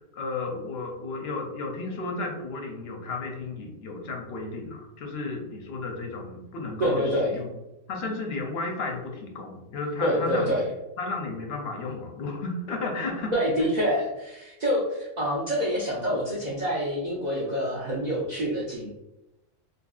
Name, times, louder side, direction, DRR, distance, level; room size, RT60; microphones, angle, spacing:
voice 1, 0.0-7.5 7.9-10.6 11.0-13.3, left 3 dB, 65° left, 1 dB, 0.7 m, -33 dB
voice 2, 6.8-7.3 10.0-10.6 13.3-18.9, equal, 60° right, -5 dB, 0.4 m, -26 dB
2.7 x 2.6 x 2.3 m, 0.95 s
omnidirectional pair, 1.4 m